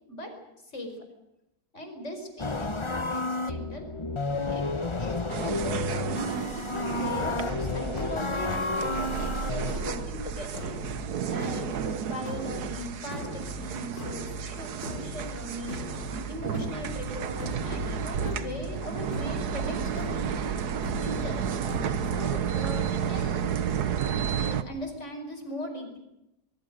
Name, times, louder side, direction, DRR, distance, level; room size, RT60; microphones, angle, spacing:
voice 1, 1.7-3.9 4.5-4.6 5.0-10.6 11.3-15.8 16.3-20.3 21.0-21.4 22.0-23.4 24.4-26.0, left 1 dB, 45° left, 6 dB, 5.2 m, -39 dB
sound 1, 2.4-9.7, left 3 dB, 20° left, 0.9 m, -31 dB
sound 2, 5.3-24.6, right 8 dB, 85° right, 1.6 m, -32 dB
sound 3, 7.1-22.1, equal, 70° left, 3.5 m, -39 dB
24.0 x 22.5 x 6.6 m, 0.87 s
omnidirectional pair, 1.7 m